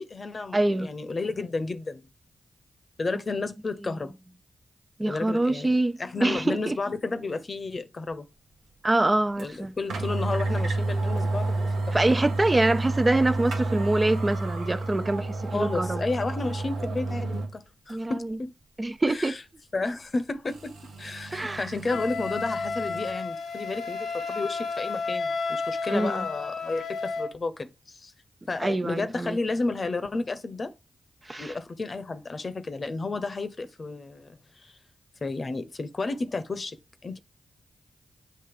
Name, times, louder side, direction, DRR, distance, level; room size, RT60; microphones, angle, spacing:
voice 1, 0.0-2.0 3.0-4.1 5.1-5.7 6.0-8.2 9.4-12.0 15.5-18.5 19.1-19.4 19.7-28.1 28.5-30.7 31.4-34.7 35.2-37.2, left 3 dB, 50° left, 0.9 m, -32 dB
voice 2, 0.5-0.9 5.0-6.8 8.8-9.7 11.9-16.0 17.9-18.4 18.8-19.3 21.3-21.7 25.9-26.3 28.6-29.4 31.3-31.5, right 2 dB, 30° right, 0.6 m, -25 dB
sound 1, 9.4-9.5 9.9-17.5 17.9-18.0 20.5-23.1, right 2 dB, 90° right, 1.1 m, -30 dB
Wind instrument woodwind instrument, 21.9-27.3, left 4 dB, 85° left, 1.0 m, -32 dB
8.0 x 2.7 x 4.9 m
supercardioid pair, 40°, 0 cm